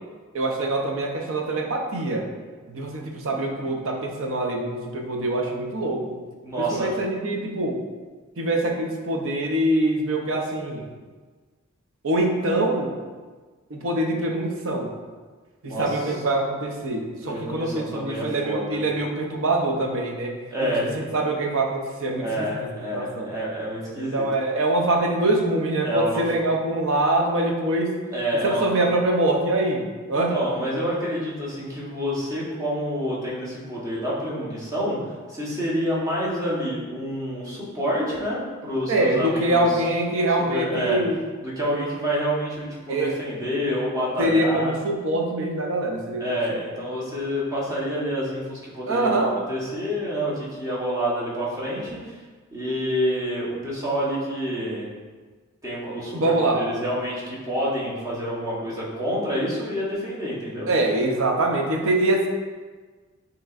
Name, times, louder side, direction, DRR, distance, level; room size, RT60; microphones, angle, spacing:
voice 1, 0.3-2.3 2.7-6.2 6.6-7.8 8.4-10.9 12.0-13.0 13.7-14.9 15.6-20.4 20.6-22.5 22.9-23.3 24.0-28.0 28.4-30.3 38.9-41.2 42.9-43.2 44.2-46.4 48.9-49.4 56.1-56.7 60.7-62.3, right 2 dB, 65° right, 2 dB, 0.7 m, -24 dB
voice 2, 6.4-6.9 15.6-15.9 17.2-18.8 20.5-20.9 22.2-24.3 25.8-26.2 28.1-28.7 30.1-35.0 35.3-39.7 40.5-41.0 41.4-44.7 46.2-52.1 52.5-54.9 55.6-60.7, equal, 15° right, -6 dB, 1.1 m, -28 dB
7.1 x 3.0 x 2.5 m, 1.4 s
head